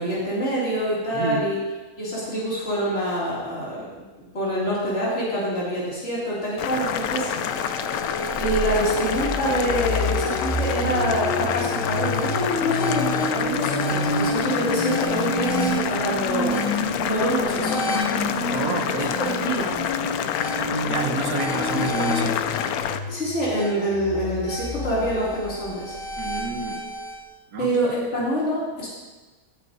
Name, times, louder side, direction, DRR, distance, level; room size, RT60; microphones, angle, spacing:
voice 1, 0.0-1.6 2.0-4.0 4.3-7.3 8.4-18.0 18.9-19.7 23.1-25.9 27.6-28.9, equal, 50° left, -8 dB, 3.1 m, -26 dB
voice 2, 1.1-1.5 18.5-19.1 20.8-22.4 26.2-26.8 27.5-27.7 28.2-28.3, right 3 dB, 75° right, 4 dB, 1.5 m, -29 dB
Boiling, 6.6-23.0, left 8 dB, 85° left, 1.1 m, -28 dB
sound 1, 7.4-27.1, left 1 dB, 65° left, 5.1 m, -29 dB
17.5 x 9.6 x 2.7 m, 1.2 s
omnidirectional pair, 1.5 m